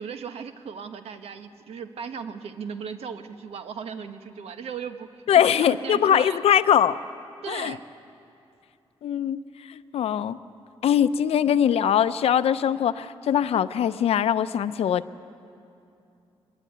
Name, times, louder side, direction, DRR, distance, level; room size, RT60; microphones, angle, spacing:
voice 1, 0.0-5.1 5.3-6.4 7.4-7.8, right 6 dB, 85° right, 8 dB, 1.2 m, -36 dB
voice 2, 5.3-7.0 7.5-7.8 9.0-10.4 10.8-15.2, left 9 dB, 80° left, 13 dB, 0.7 m, -22 dB
24.0 x 20.0 x 9.4 m, 2.7 s
wide cardioid pair, 160°, 10 cm